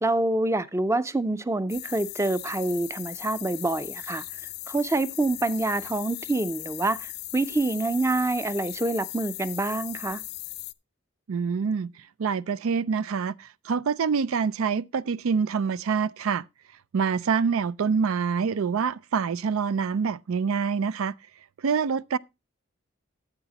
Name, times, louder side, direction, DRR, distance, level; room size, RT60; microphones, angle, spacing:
voice 1, 0.0-4.4 4.7-10.2, right 2 dB, 15° right, 0.5 m, -26 dB
sound 1, 1.7-10.7, left 17 dB, 50° left, 0.5 m, -38 dB
voice 2, 11.3-16.4 16.9-21.1 21.6-22.2, right 6 dB, 80° right, 0.4 m, -26 dB
13.5 x 8.0 x 2.9 m
head